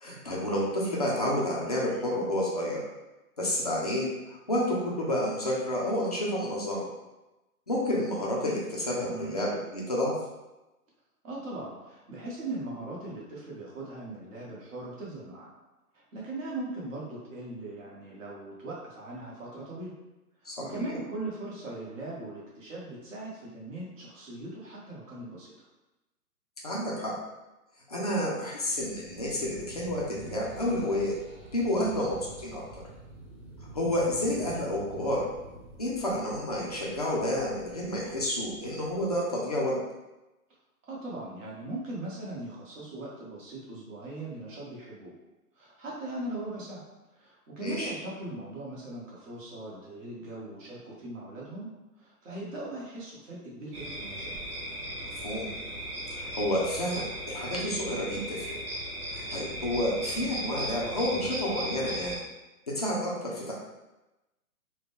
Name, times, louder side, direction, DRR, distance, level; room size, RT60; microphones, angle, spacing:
voice 1, 0.0-2.8 3.4-6.9 7.7-10.1 20.4-20.9 26.6-27.1 27.9-31.1 31.5-32.6 33.7-35.2 35.8-39.8 47.6-47.9 55.2-55.5 56.1-58.6 59.1-62.2 62.7-63.5, left 1 dB, 30° left, -4 dB, 0.4 m, -30 dB
voice 2, 11.2-15.5 15.9-19.9 20.4-25.7 31.8-31.9 40.9-45.1 45.5-46.8 47.1-51.7 52.0-54.3 61.1-61.3, right 2 dB, 55° right, -5 dB, 1.4 m, -39 dB
sound 1, 28.7-39.2, right 2 dB, 10° right, 0.9 m, -48 dB
sound 2, 53.7-62.2, equal, 35° right, 0.9 m, -37 dB
3.7 x 2.2 x 3.5 m, 1.0 s
hypercardioid pair, 150°, 46 cm